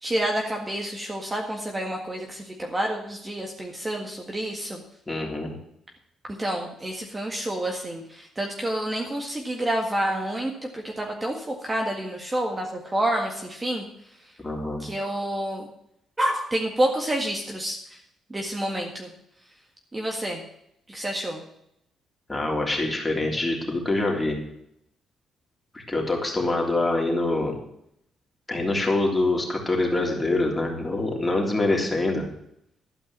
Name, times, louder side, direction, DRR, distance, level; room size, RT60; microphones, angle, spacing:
voice 1, 0.0-4.8 6.4-13.8 14.2-14.3 14.8-15.7 16.2-18.0 18.3-19.1 19.9-20.4 20.9-21.4, right 1 dB, 20° right, 1 dB, 1.8 m, -28 dB
voice 2, 5.1-5.5 14.4-14.8 22.3-24.4 25.7-27.6 28.5-32.2, left 2 dB, 15° left, -1 dB, 3.4 m, -25 dB
12.0 x 5.2 x 8.7 m, 0.76 s
cardioid pair, 90°, 0 cm